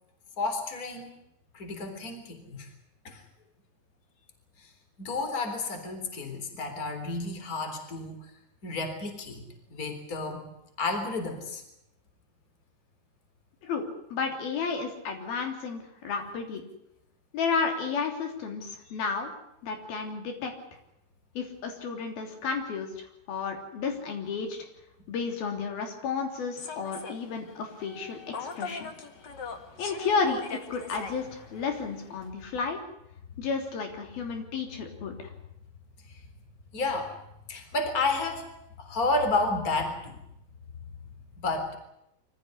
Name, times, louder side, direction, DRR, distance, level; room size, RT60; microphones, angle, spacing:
voice 1, 0.4-1.1 1.5-2.7 3.0-3.2 4.6-4.7 5.0-8.3 8.6-10.4 10.8-11.6 18.9-19.0 36.1-36.2 36.7-37.1 37.5-38.5 38.8-40.2 41.4-41.8, left 3 dB, 20° left, 6 dB, 3.8 m, -31 dB
voice 2, 14.1-16.6 17.3-19.3 19.6-20.5 21.3-22.9 23.3-24.6 25.1-28.9 29.8-32.8 33.4-35.2, left 5 dB, 65° left, 4 dB, 5.1 m, -32 dB
Human voice / Subway metro underground, 26.6-32.3, left 5 dB, 50° left, 1.3 m, -42 dB
25.0 x 15.0 x 9.8 m, 0.81 s
omnidirectional pair, 4.6 m